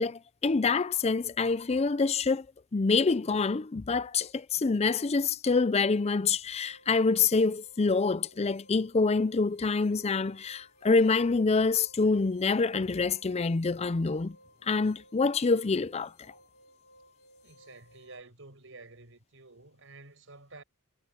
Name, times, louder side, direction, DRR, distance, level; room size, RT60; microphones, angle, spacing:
voice 1, 0.0-2.5 2.7-14.4 14.6-16.1, left 4 dB, 30° left, 0.5 m, -26 dB
sound 1, 6.5-18.2, equal, 45° left, 4.8 m, -60 dB
voice 2, 17.4-20.6, right 3 dB, 60° right, 7.8 m, -51 dB
head